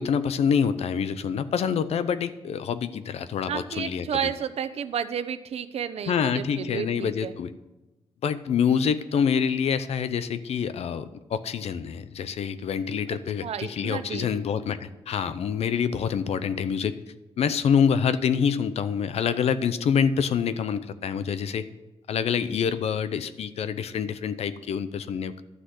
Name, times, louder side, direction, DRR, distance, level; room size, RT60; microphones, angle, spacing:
voice 1, 0.0-4.3 6.1-7.5 8.2-17.0 17.4-21.7 22.1-25.3, left 7 dB, 85° left, 13 dB, 0.7 m, -26 dB
voice 2, 3.5-7.3 13.4-14.3, right 8 dB, 80° right, 11 dB, 0.8 m, -31 dB
12.0 x 6.4 x 7.8 m, 1.0 s
wide cardioid pair, 135°, 10 cm